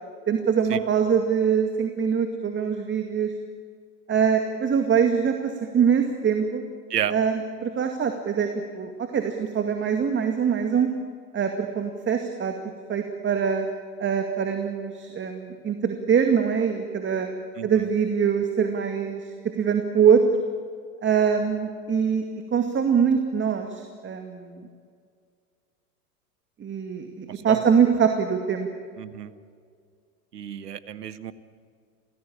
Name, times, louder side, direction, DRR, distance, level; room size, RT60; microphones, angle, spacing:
voice 1, 0.3-3.3 4.1-6.6 7.1-8.5 8.7-10.9 11.3-12.5 12.9-13.7 14.0-17.3 17.6-20.2 21.0-22.2 22.5-24.6 26.6-28.7, right 7 dB, 25° right, 5 dB, 2.2 m, -23 dB
voice 2, 29.0-29.3 30.3-31.3, right 9 dB, 85° right, 14 dB, 1.4 m, -30 dB
28.0 x 18.5 x 8.8 m, 2.1 s
hypercardioid pair, 95°, 47 cm